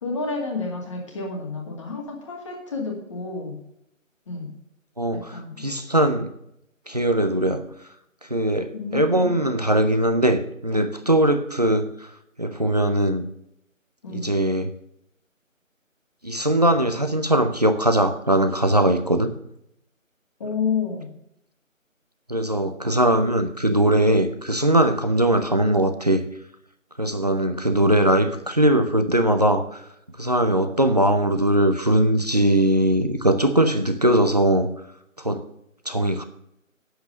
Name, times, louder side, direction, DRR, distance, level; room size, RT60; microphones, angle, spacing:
voice 1, 0.0-3.6 4.3-4.5 5.3-5.6 8.7-9.4 14.0-14.3 20.4-21.1, left 4 dB, 20° left, 1 dB, 2.1 m, -30 dB
voice 2, 5.0-6.3 6.9-7.7 8.2-12.1 12.4-13.3 14.1-14.7 16.2-19.3 22.3-26.2 27.0-29.8 30.2-34.7 35.2-35.5 35.9-36.2, right 1 dB, 30° right, 8 dB, 0.7 m, -20 dB
9.3 x 7.9 x 6.5 m, 0.76 s
figure-of-eight pair, 160°, 41 cm